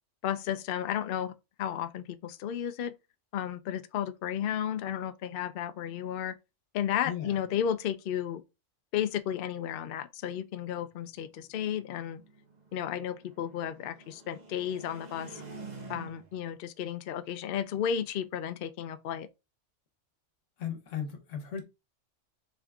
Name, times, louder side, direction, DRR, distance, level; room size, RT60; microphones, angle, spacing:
voice 1, 0.2-1.3 1.6-2.9 3.3-6.3 6.7-8.4 8.9-12.2 12.7-15.4 15.9-19.3, left 9 dB, 60° left, 0.6 m, -33 dB
voice 2, 7.0-7.4 20.6-21.6, left 8 dB, 85° left, 1.3 m, -36 dB
sound 1, 11.0-16.5, right 3 dB, 40° right, 1.1 m, -49 dB
3.7 x 3.6 x 3.4 m
omnidirectional pair, 1.3 m